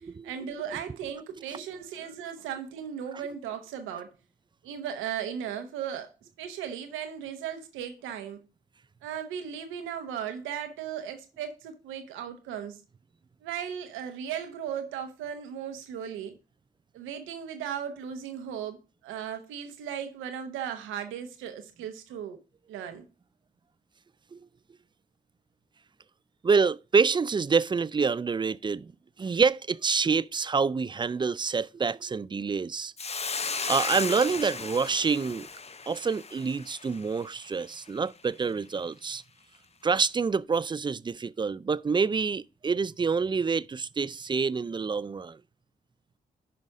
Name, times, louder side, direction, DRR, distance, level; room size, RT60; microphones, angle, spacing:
voice 1, 0.2-4.1 4.6-6.1 6.4-8.4 9.0-12.8 13.4-16.3 16.9-22.4 22.7-23.1, right 8 dB, 90° right, 0.9 m, -36 dB
voice 2, 26.4-28.9 29.2-32.9 33.7-35.5 35.9-39.2 39.8-45.4, right 5 dB, 25° right, 0.3 m, -27 dB
Hiss, 33.0-37.5, left 5 dB, 35° left, 0.6 m, -35 dB
11.0 x 5.2 x 3.6 m
supercardioid pair, 40°, 20 cm